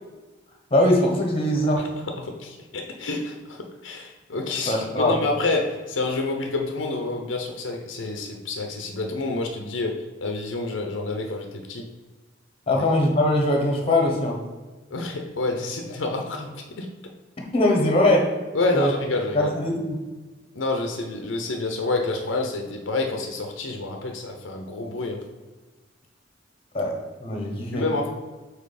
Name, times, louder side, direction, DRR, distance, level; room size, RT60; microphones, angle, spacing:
voice 1, 0.7-1.8 4.7-5.1 12.7-14.3 17.5-18.3 18.7-18.9 19.3-20.0 26.7-26.9 27.2-27.8, left 1 dB, 30° left, 1 dB, 1.1 m, -21 dB
voice 2, 2.2-11.9 12.7-12.8 14.9-16.9 18.5-19.5 20.5-25.2 27.7-28.1, left 3 dB, 80° left, 3 dB, 0.7 m, -28 dB
5.3 x 4.2 x 4.2 m, 1.3 s
head